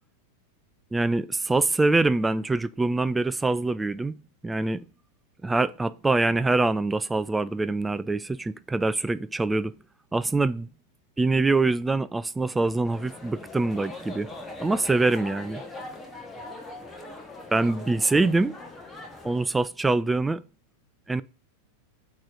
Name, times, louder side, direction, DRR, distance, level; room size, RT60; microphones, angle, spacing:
voice 1, 0.9-4.8 5.4-9.7 10.1-10.7 11.2-14.3 14.6-15.6 17.5-18.5 19.2-20.4 21.1-21.2, right 3 dB, 10° right, 0.3 m, -24 dB
sound 1, 12.8-19.5, left 2 dB, 10° left, 1.2 m, -41 dB
8.6 x 3.1 x 3.8 m
figure-of-eight pair, 90°, 0 cm